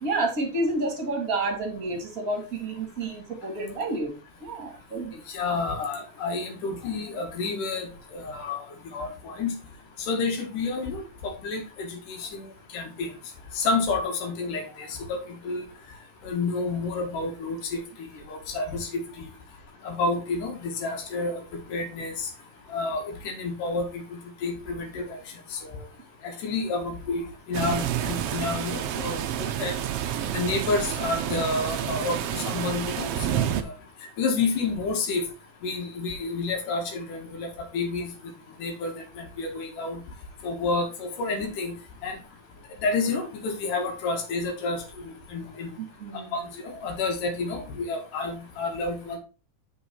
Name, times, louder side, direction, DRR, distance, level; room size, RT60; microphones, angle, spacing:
voice 1, 0.0-4.2 4.4-5.2 46.0-46.4, right 2 dB, 35° right, 1 dB, 1.8 m, -29 dB
voice 2, 5.3-7.9 8.1-8.6 8.9-9.5 10.0-12.4 12.7-13.1 13.6-15.2 15.4-15.6 16.2-17.8 18.3-18.9 19.8-21.4 21.7-22.3 22.7-23.9 24.4-25.2 25.5-25.6 26.2-27.2 27.5-29.7 30.3-33.7 34.2-35.2 35.6-38.1 38.6-40.0 40.4-41.7 42.0-42.1 42.8-44.8 45.3-45.8 46.3-46.4 46.8-49.2, left 3 dB, 85° left, 3 dB, 3.2 m, -29 dB
sound 1, 27.5-33.6, right 10 dB, 85° right, 1.3 m, -29 dB
6.9 x 5.4 x 4.3 m, 0.34 s
omnidirectional pair, 3.6 m